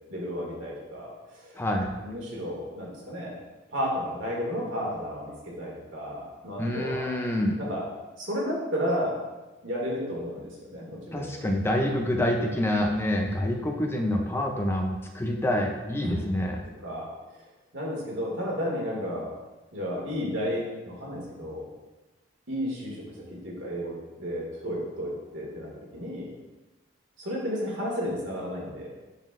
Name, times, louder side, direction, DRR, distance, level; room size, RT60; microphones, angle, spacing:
voice 1, 0.1-1.6 2.0-3.4 3.7-7.2 7.6-7.8 8.2-9.2 9.6-11.8 16.0-16.2 16.8-17.1 17.7-19.3 19.7-21.7 22.5-23.0 23.3-26.3 27.2-28.9, equal, 75° right, -3 dB, 1.9 m, -32 dB
voice 2, 1.6-1.9 6.6-7.6 11.1-16.6, left 1 dB, 10° left, 2 dB, 0.5 m, -27 dB
10.5 x 4.1 x 2.4 m, 1.1 s
head